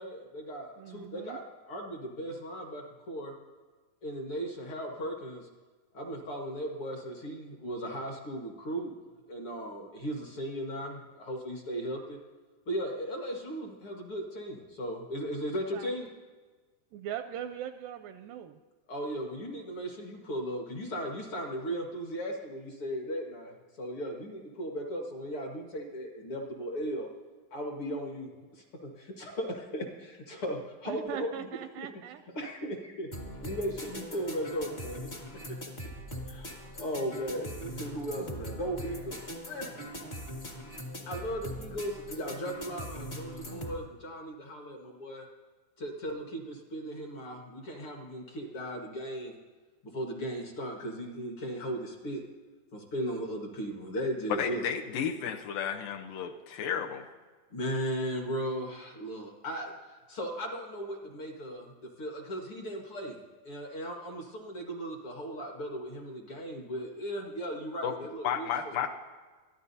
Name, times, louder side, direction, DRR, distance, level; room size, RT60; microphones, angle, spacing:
voice 1, 0.0-3.3 4.0-5.5 5.9-8.9 9.3-12.2 12.7-16.1 18.9-23.5 23.8-27.1 27.5-31.5 31.8-31.9 32.4-33.1 33.4-35.1 35.5-35.6 35.8-35.9 36.3-39.8 41.1-45.3 45.8-49.4 49.8-52.2 52.7-54.6 57.5-63.2 63.4-68.5, equal, 50° left, 1 dB, 1.8 m, -37 dB
voice 2, 0.8-1.4 15.7-15.9 16.9-18.6 30.9-32.2, right 10 dB, 80° right, 9 dB, 2.0 m, -40 dB
sound 1, 33.1-43.8, equal, 30° left, 1.1 m, -41 dB
voice 3, 54.4-57.1 67.8-67.9 68.2-68.9, left 8 dB, 75° left, 4 dB, 2.3 m, -32 dB
23.0 x 14.0 x 2.8 m, 1.4 s
omnidirectional pair, 4.2 m